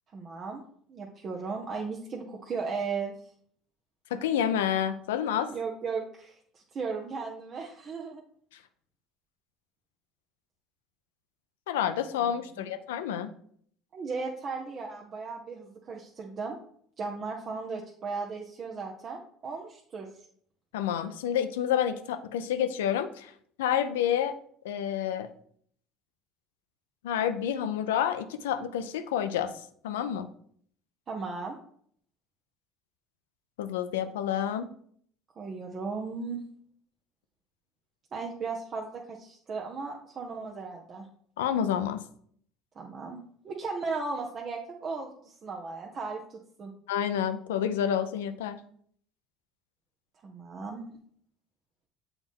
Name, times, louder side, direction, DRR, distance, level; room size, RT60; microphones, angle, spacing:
voice 1, 0.1-0.6 0.9-3.1 5.5-8.2 12.6-12.7 13.9-16.6 17.0-20.1 31.1-31.6 35.4-36.4 38.1-41.1 42.8-46.7 50.2-51.0, right 4 dB, 45° right, 0 dB, 0.9 m, -36 dB
voice 2, 4.1-5.5 11.7-13.3 20.7-23.3 23.6-24.3 24.6-25.3 27.0-29.5 29.8-30.3 33.6-34.7 41.4-42.0 46.9-48.6, left 9 dB, 90° left, 11 dB, 0.5 m, -29 dB
7.1 x 4.0 x 3.6 m, 0.62 s
hypercardioid pair, 80°, 0 cm